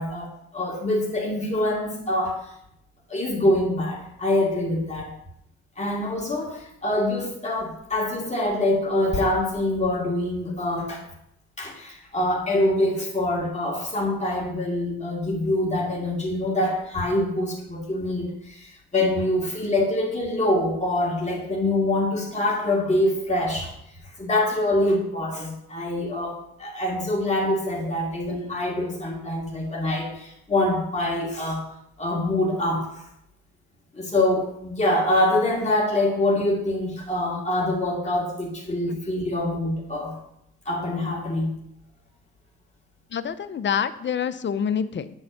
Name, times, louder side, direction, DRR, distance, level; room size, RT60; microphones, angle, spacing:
voice 1, 0.0-2.4 3.1-5.1 5.8-11.0 11.6-23.7 24.2-31.6 32.0-32.9 33.9-40.1 40.7-41.5, left 1 dB, 25° left, -2 dB, 2.5 m, -25 dB
voice 2, 43.1-45.1, left 7 dB, 40° left, 12 dB, 0.7 m, -27 dB
9.7 x 4.4 x 6.9 m, 0.78 s
cardioid pair, 90°, 30 cm